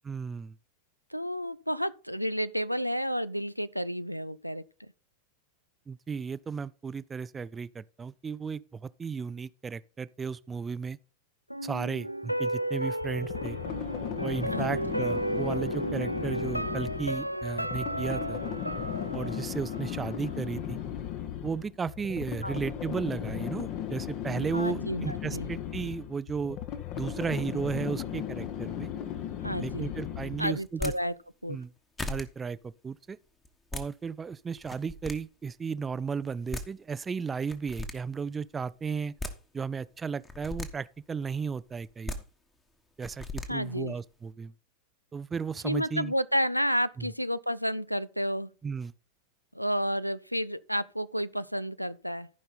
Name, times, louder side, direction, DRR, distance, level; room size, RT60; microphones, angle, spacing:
voice 1, 0.0-0.6 5.9-11.0 11.6-13.6 14.2-18.4 19.1-20.8 21.4-26.6 26.9-28.9 29.6-30.9 31.5-31.7 32.1-33.2 33.7-39.1 39.5-42.1 43.0-44.5 45.1-46.1 47.0-47.1 48.6-48.9, right 5 dB, 15° right, 0.4 m, -34 dB
voice 2, 1.1-4.6 14.5-15.0 22.4-22.6 24.5-25.5 29.4-29.9 30.4-31.1 31.4-31.6 43.5-44.0 45.6-48.5 49.5-52.3, equal, 90° left, 0.4 m, -31 dB
sound 1, 11.5-20.5 20.8-20.9, right 1 dB, 90° right, 0.4 m, -34 dB
sound 2, 13.0-30.6, left 10 dB, 40° left, 1.0 m, -36 dB
sound 3, 30.6-30.9 31.6-31.7 32.0-32.2 33.4-33.9 34.6-35.1 36.2-36.3 36.5-36.7 37.5-37.9 38.9-39.3 40.2-40.7 41.8-42.2 43.0-43.5, left 2 dB, 15° left, 1.2 m, -36 dB
14.0 x 5.4 x 4.1 m
figure-of-eight pair, 90°, 0 cm